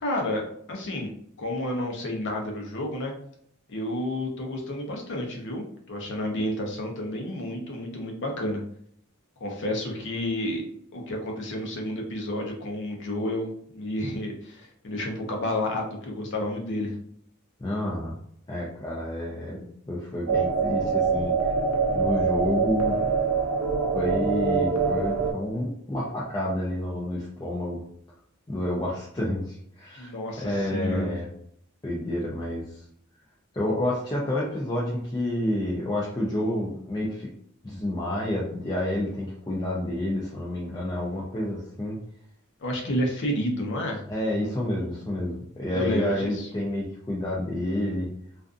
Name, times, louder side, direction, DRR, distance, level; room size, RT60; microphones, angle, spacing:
voice 1, 0.0-1.1 1.4-3.1 3.7-8.6 9.4-10.7 10.9-16.9 30.0-31.3 42.6-44.0 45.7-46.5, left 1 dB, 60° left, 1 dB, 0.7 m, -30 dB
voice 2, 17.6-18.2 18.5-21.5 21.9-23.0 23.9-27.8 28.5-31.3 31.8-32.8 33.5-37.3 37.6-42.0 44.1-48.1, left 1 dB, 20° left, -5 dB, 0.4 m, -29 dB
sound 1, 20.3-25.3, right 5 dB, 85° right, 0.5 m, -24 dB
2.5 x 2.4 x 2.4 m, 0.67 s
head